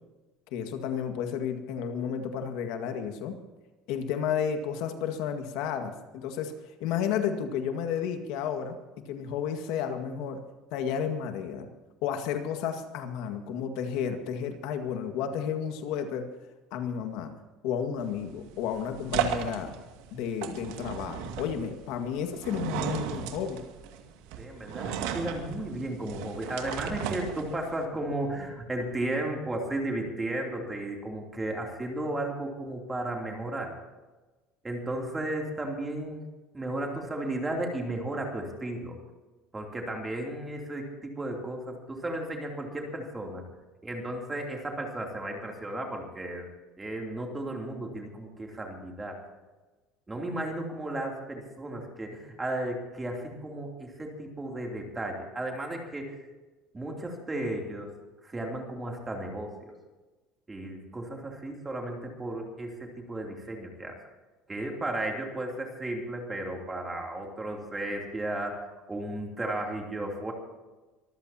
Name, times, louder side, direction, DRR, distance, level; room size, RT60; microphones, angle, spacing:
voice 1, 0.5-3.4 3.9-6.5 6.8-8.8 9.1-10.4 10.7-11.7 12.0-16.3 16.7-17.3 17.6-19.8 20.1-23.6, left 8 dB, 65° left, 6 dB, 1.9 m, -32 dB
sound 1, 18.0-27.8, right 9 dB, 80° right, 2.2 m, -35 dB
voice 2, 24.4-33.7 34.6-36.3 36.5-39.0 39.5-43.4 43.8-46.5 46.8-49.2 50.1-56.2 56.7-57.9 58.2-59.7 60.5-64.0 64.5-70.3, right 1 dB, 10° right, 1 dB, 3.1 m, -34 dB
24.5 x 15.0 x 2.9 m, 1.2 s
cardioid pair, 155°, 0 cm